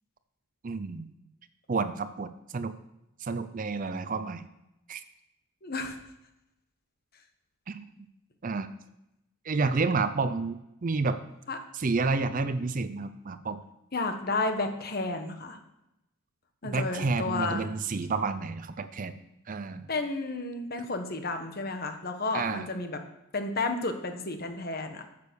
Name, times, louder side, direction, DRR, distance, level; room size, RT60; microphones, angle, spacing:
voice 1, 0.6-1.1 1.7-2.7 3.2-4.4 4.9-5.0 7.7-7.9 8.4-8.7 9.4-11.2 11.7-13.6 16.6-19.2 19.5-19.9 22.3-22.7, right 4 dB, 35° right, 11 dB, 0.4 m, -30 dB
voice 2, 5.6-6.0 11.5-11.6 13.9-15.6 16.6-17.7 19.9-23.0 23.3-25.0, left 3 dB, 45° left, 6 dB, 1.2 m, -32 dB
9.7 x 6.7 x 6.9 m, 0.88 s
head